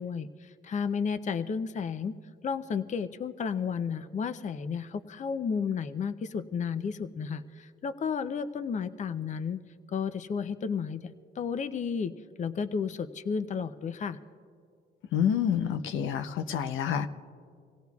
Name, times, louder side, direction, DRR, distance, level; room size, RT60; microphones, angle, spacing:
voice 1, 0.0-2.1 2.4-9.6 9.9-12.1 12.4-14.2, left 6 dB, 35° left, 11 dB, 0.5 m, -32 dB
voice 2, 15.1-17.1, left 8 dB, 80° left, 9 dB, 0.7 m, -28 dB
25.5 x 16.5 x 2.3 m, 2.3 s
cardioid pair, 90°, 20 cm